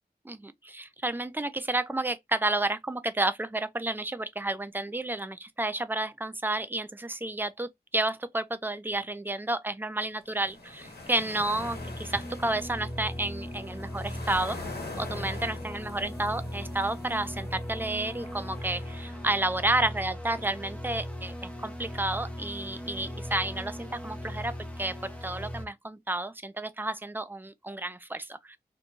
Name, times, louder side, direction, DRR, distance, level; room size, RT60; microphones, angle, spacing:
voice 1, 0.2-14.6 15.0-24.5 24.8-28.6, right 2 dB, 10° right, 0.3 m, -31 dB
sound 1, 10.3-19.5, left 2 dB, 70° left, 1.1 m, -44 dB
sound 2, 11.5-25.6, equal, 10° left, 0.7 m, -38 dB
3.0 x 2.2 x 2.5 m
wide cardioid pair, 95°, 17 cm